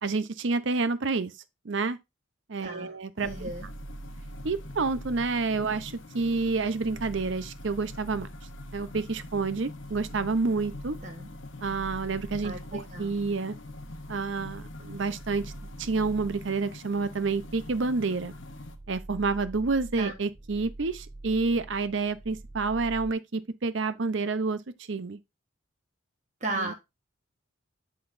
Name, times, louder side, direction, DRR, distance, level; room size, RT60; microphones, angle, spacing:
voice 1, 0.0-1.3 1.6-2.0 2.5-3.5 4.4-8.3 8.7-11.0 11.6-13.6 14.1-15.5 15.8-18.3 18.9-24.6 24.9-25.2 26.6-26.7, right 4 dB, 60° right, 0.6 m, -29 dB
voice 2, 2.6-2.9 3.2-3.7 11.0-11.3 12.4-13.1 20.0-20.1 26.4-26.7, right 2 dB, 35° right, 1.2 m, -35 dB
sound 1, 3.2-18.8, left 3 dB, 65° left, 0.8 m, -45 dB
sound 2, 3.2-23.1, right 2 dB, 20° right, 0.5 m, -45 dB
11.0 x 3.9 x 2.6 m
head